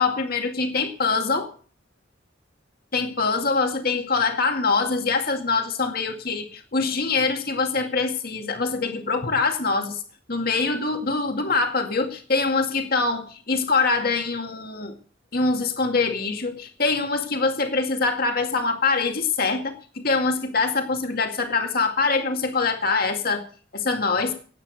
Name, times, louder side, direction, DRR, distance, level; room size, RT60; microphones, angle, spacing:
voice 1, 0.0-1.5 2.9-10.0 10.3-15.0 15.3-23.4 23.7-24.3, left 4 dB, 50° left, 5 dB, 2.1 m, -24 dB
17.0 x 9.2 x 6.5 m, 0.41 s
head